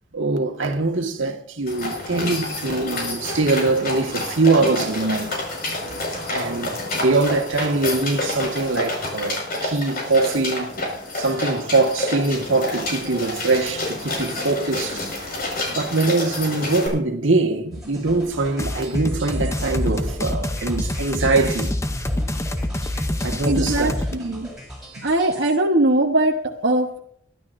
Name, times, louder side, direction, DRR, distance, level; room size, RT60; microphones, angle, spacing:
voice 1, 0.1-5.4 6.3-10.7 11.1-15.0 15.7-21.7 23.2-24.0, right 3 dB, 85° right, 1.8 m, -22 dB
sound 1, 1.7-16.9, left 2 dB, 50° left, 5.5 m, -29 dB
sound 2, 17.7-25.5, equal, 5° right, 7.4 m, -39 dB
sound 3, 18.6-24.1, left 1 dB, 15° left, 0.8 m, -26 dB
voice 2, 23.4-24.5 25.0-27.0, right 1 dB, 65° right, 1.2 m, -21 dB
22.5 x 12.0 x 2.7 m
head